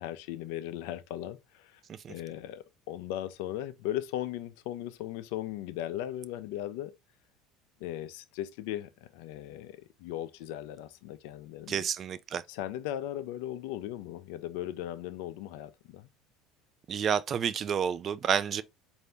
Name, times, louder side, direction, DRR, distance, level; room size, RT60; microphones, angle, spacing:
voice 1, 0.0-1.8 2.1-6.9 7.8-11.9 12.5-16.1, left 12 dB, 75° left, 0.5 m, -38 dB
voice 2, 11.7-12.4 16.9-18.6, right 8 dB, 45° right, 0.4 m, -30 dB
4.3 x 2.7 x 3.4 m
supercardioid pair, 85°, 0 cm